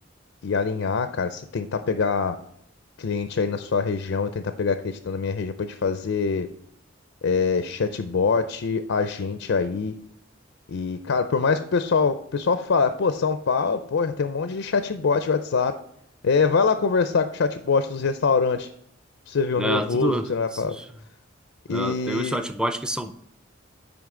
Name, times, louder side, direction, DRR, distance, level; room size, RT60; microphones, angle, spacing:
voice 1, 0.4-2.4 3.0-6.5 7.2-9.9 10.7-15.8 16.2-18.7 19.3-20.8 21.7-22.4, left 5 dB, 90° left, 0.5 m, -24 dB
voice 2, 19.6-20.3 20.5-20.8 21.7-23.1, right 1 dB, 5° right, 0.4 m, -27 dB
9.4 x 5.1 x 3.7 m
head